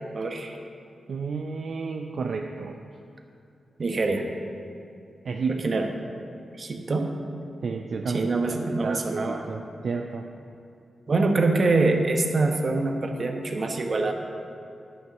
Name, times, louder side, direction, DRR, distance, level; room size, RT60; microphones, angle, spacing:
voice 1, 0.1-0.6 3.8-4.3 5.6-5.9 6.6-7.1 8.1-9.4 11.1-14.1, right 3 dB, 50° right, 4 dB, 1.1 m, -24 dB
voice 2, 1.1-2.8 5.2-5.6 7.6-10.3, right 4 dB, 70° right, 3 dB, 0.5 m, -31 dB
10.5 x 6.6 x 6.2 m, 2.6 s
cardioid pair, 65°, 0 cm